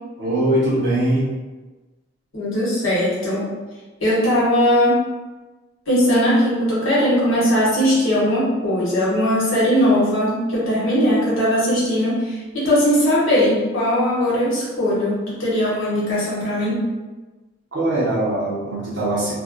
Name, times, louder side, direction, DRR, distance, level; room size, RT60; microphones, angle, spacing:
voice 1, 0.2-1.3 17.7-19.3, right 1 dB, 60° right, -7 dB, 0.8 m, -21 dB
voice 2, 2.3-3.5 4.0-5.0 5.9-16.8, equal, 80° left, -8 dB, 1.0 m, -19 dB
2.3 x 2.1 x 2.5 m, 1.2 s
head